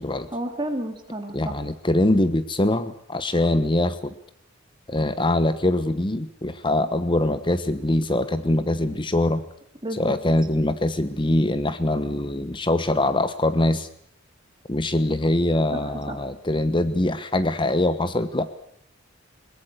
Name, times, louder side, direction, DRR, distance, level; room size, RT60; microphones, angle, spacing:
voice 1, 0.3-1.6 9.8-10.2 15.7-16.2, right 1 dB, 25° right, 4 dB, 3.6 m, -31 dB
voice 2, 1.3-4.1 4.9-9.4 9.9-13.9 14.7-18.5, left 1 dB, 25° left, 12 dB, 1.1 m, -23 dB
22.5 x 19.0 x 8.1 m, 0.67 s
head